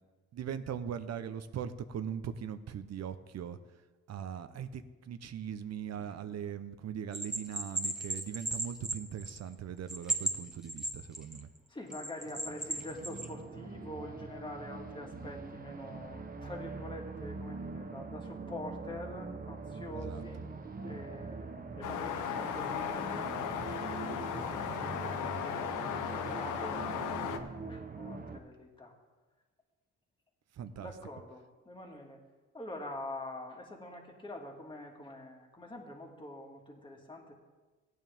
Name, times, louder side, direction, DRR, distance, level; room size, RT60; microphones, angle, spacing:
voice 1, 0.3-3.6 4.1-4.8 5.1-11.5 20.0-20.2 30.6-30.9, right 8 dB, 60° right, 11 dB, 0.9 m, -40 dB
voice 2, 6.0-6.6 11.7-20.4 20.8-25.5 26.1-28.9 30.8-32.2 32.5-37.3, left 1 dB, 15° left, 0 dB, 2.2 m, -46 dB
Bell, 7.1-9.5 9.9-11.4 11.9-13.3, right 2 dB, ahead, 1.6 m, -35 dB
sound 1, 12.2-28.4, right 4 dB, 30° right, 1.0 m, -43 dB
sound 2, 21.8-27.4, left 8 dB, 90° left, 0.9 m, -36 dB
16.5 x 9.3 x 3.6 m, 1.3 s
cardioid pair, 90°, 30 cm